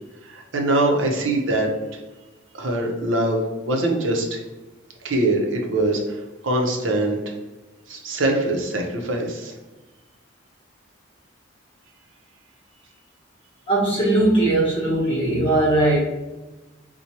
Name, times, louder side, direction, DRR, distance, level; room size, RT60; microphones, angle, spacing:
voice 1, 0.2-1.7 2.5-4.4 5.0-7.3 7.9-9.5, right 2 dB, 75° right, 2 dB, 0.7 m, -23 dB
voice 2, 13.7-16.0, right 2 dB, 30° left, -6 dB, 0.9 m, -19 dB
4.4 x 2.2 x 2.8 m, 1.1 s
head